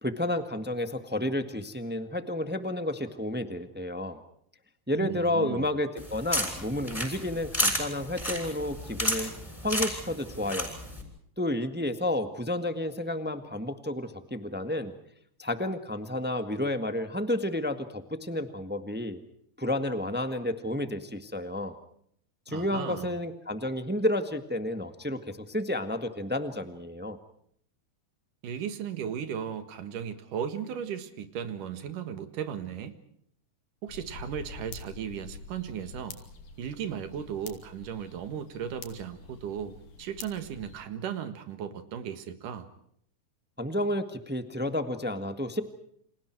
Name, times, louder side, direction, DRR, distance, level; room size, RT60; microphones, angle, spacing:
voice 1, 0.0-4.2 4.9-9.3 9.6-10.7 11.4-14.9 15.4-19.2 19.6-21.7 22.5-27.2 43.6-45.6, left 1 dB, 10° right, 9 dB, 0.6 m, -31 dB
voice 2, 4.9-5.7 22.5-23.2 28.4-33.0 33.8-36.2 36.6-42.7, right 8 dB, 85° right, 10 dB, 3.2 m, -36 dB
sound 1, 6.0-11.0, equal, 10° left, 6.3 m, -32 dB
sound 2, 33.9-40.8, left 4 dB, 85° left, 4.3 m, -46 dB
29.5 x 27.0 x 4.6 m, 0.68 s
omnidirectional pair, 3.6 m